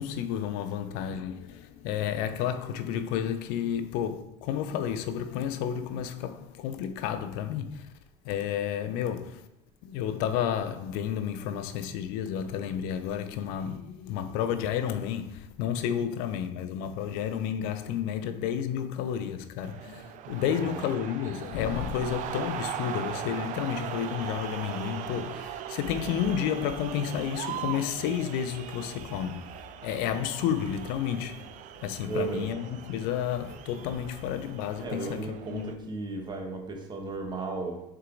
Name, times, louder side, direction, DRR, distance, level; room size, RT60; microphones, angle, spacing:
voice 1, 0.0-7.8 8.2-9.4 9.8-29.5 29.8-31.4 31.8-35.7, left 9 dB, 70° left, 0.7 m, -31 dB
sound 1, 19.6-35.7, right 10 dB, 55° right, 0.6 m, -40 dB
voice 2, 20.4-20.8 32.0-32.5 34.8-37.8, right 3 dB, 30° right, 1.5 m, -35 dB
6.5 x 4.7 x 3.9 m
supercardioid pair, 100°, 16 cm